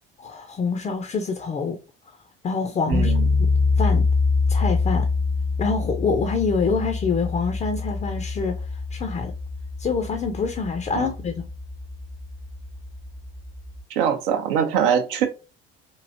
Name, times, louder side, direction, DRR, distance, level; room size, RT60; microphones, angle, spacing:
voice 1, 0.2-1.8 2.4-3.1 3.4-3.5 3.8-4.1 4.5-5.1 5.6-9.3 9.8-11.4, left 5 dB, 20° left, 0.5 m, -26 dB
sound 1, 2.9-13.8, left 4 dB, 35° right, 1.1 m, -25 dB
voice 2, 2.9-3.2 11.0-11.1 13.9-15.3, right 8 dB, 60° right, 0.7 m, -22 dB
3.0 x 2.7 x 2.5 m
figure-of-eight pair, 55°, 30 cm